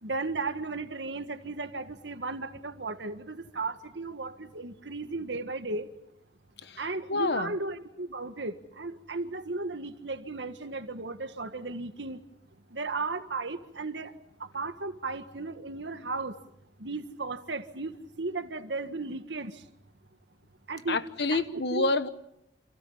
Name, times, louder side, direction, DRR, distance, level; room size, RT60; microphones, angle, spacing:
voice 1, 0.0-5.9 6.8-12.2 12.7-14.1 14.4-16.4 16.8-19.6 20.7-21.0 21.3-21.9, right 3 dB, 85° right, 1.8 m, -35 dB
voice 2, 6.6-7.6 20.9-22.1, left 2 dB, 70° left, 1.3 m, -29 dB
29.5 x 27.5 x 5.7 m
head